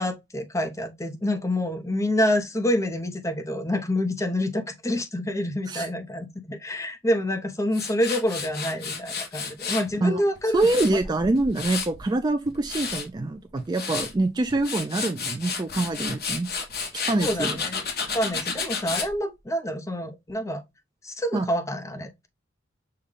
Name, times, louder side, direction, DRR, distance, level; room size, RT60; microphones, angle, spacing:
voice 1, 0.0-10.7 17.2-17.9 18.1-20.6 21.0-22.3, left 1 dB, 15° left, 0.7 m, -27 dB
Tools, 7.7-9.9 10.4-12.0 12.5-13.0 13.6-14.1 14.5-19.1, left 5 dB, 50° left, 1.2 m, -31 dB
voice 2, 10.0-16.5 16.9-17.6 21.3-21.5, right 2 dB, 20° right, 0.3 m, -25 dB
6.6 x 2.2 x 3.6 m
head